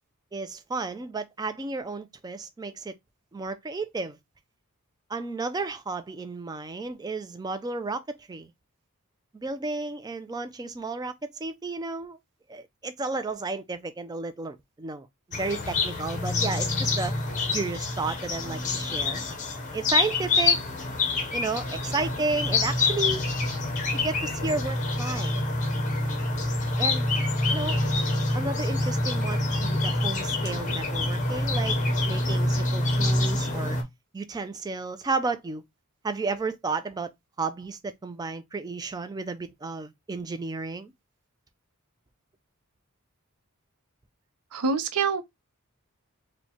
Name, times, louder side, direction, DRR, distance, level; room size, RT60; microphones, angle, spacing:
voice 1, 0.3-3.0 3.3-4.2 5.1-8.5 9.3-12.2 12.5-17.1 17.5-19.2 19.7-20.6 21.3-23.2 23.9-25.4 26.8-27.1 27.5-27.8 28.3-31.8 32.0-33.8 34.1-35.6 36.0-37.1 37.4-40.9, right 3 dB, 20° right, 0.3 m, -32 dB
sound 1, 15.3-33.8, left 2 dB, 35° left, 0.6 m, -26 dB
voice 2, 44.5-45.2, right 5 dB, 90° right, 0.5 m, -25 dB
4.4 x 2.1 x 2.7 m
head